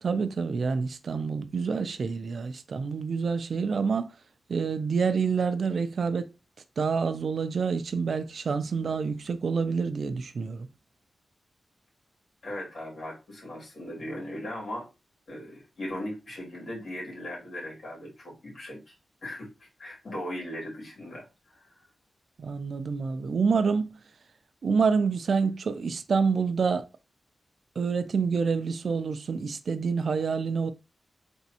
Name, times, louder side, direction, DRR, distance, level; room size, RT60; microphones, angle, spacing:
voice 1, 0.0-4.1 4.5-6.3 6.8-10.7 22.4-23.9 24.6-26.8 27.8-30.7, right 5 dB, 60° right, 0.4 m, -27 dB
voice 2, 12.4-14.9 15.3-18.9 19.2-21.8, left 1 dB, 55° left, 2.6 m, -38 dB
4.0 x 3.5 x 2.8 m
wide cardioid pair, 145°, 0 cm